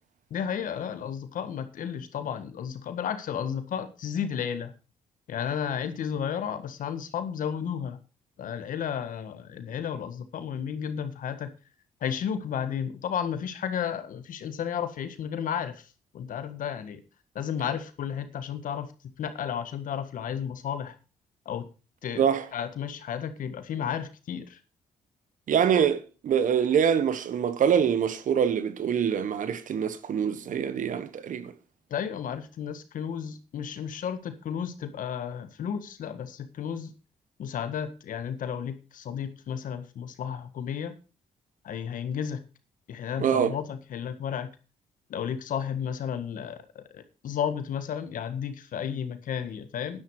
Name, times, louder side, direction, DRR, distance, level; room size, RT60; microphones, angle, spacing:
voice 1, 0.3-4.7 5.3-8.0 8.4-11.5 12.0-15.9 16.1-17.0 17.3-18.9 19.2-20.9 21.4-21.6 22.0-22.2 22.5-24.6 31.9-36.9 37.4-40.9 41.6-42.4 42.9-44.5 45.1-50.0, left 8 dB, 70° left, 1.7 m, -33 dB
voice 2, 22.2-22.5 25.5-31.5 43.2-43.6, right 8 dB, 65° right, 1.4 m, -25 dB
10.5 x 10.5 x 4.9 m
supercardioid pair, 50°, 14 cm